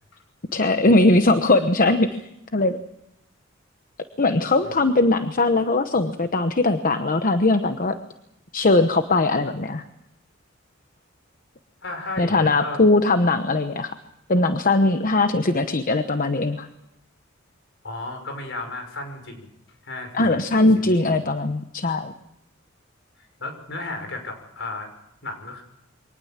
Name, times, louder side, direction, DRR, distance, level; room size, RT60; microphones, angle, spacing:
voice 1, 0.5-2.2 2.5-2.8 4.2-8.0 8.5-9.8 12.2-13.9 14.3-16.7 20.1-22.1, left 2 dB, 45° left, 9 dB, 1.0 m, -20 dB
voice 2, 11.8-12.8 17.8-19.5 19.8-20.5 21.0-21.2 23.2-24.9 25.2-25.6, left 2 dB, 65° left, 5 dB, 5.8 m, -34 dB
24.0 x 19.0 x 7.4 m, 0.82 s
head